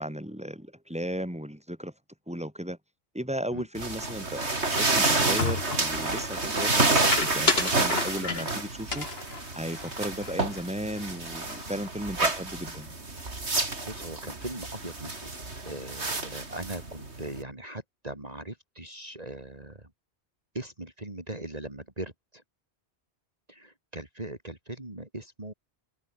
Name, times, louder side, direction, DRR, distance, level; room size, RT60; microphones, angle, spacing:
voice 1, 0.0-1.9 2.3-2.8 3.1-9.1 9.5-12.9, equal, 5° right, 6.5 m, -35 dB
sound 1, 3.8-17.4, right 2 dB, 90° right, 4.0 m, -29 dB
sound 2, 5.4-6.0 7.1-8.6 8.9-10.6 10.9-11.1 11.4-11.9, left 3 dB, 65° left, 2.6 m, -31 dB
voice 2, 13.8-15.2 15.7-19.9 20.5-22.4 23.5-25.5, right 1 dB, 35° right, 3.8 m, -39 dB
omnidirectional pair, 1.1 m